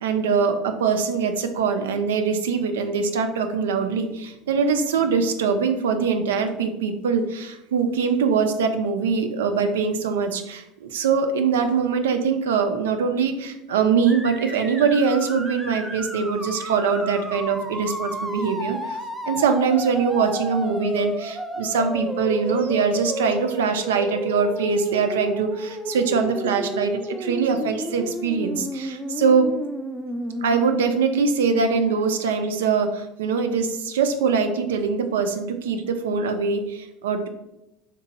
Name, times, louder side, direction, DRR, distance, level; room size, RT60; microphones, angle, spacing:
voice 1, 0.0-19.0 19.3-29.5 30.4-37.3, right 5 dB, 80° right, 7 dB, 0.3 m, -23 dB
sound 1, 14.1-30.8, equal, ahead, 0.4 m, -32 dB
2.8 x 2.2 x 3.9 m, 0.91 s
hypercardioid pair, 75°, 0 cm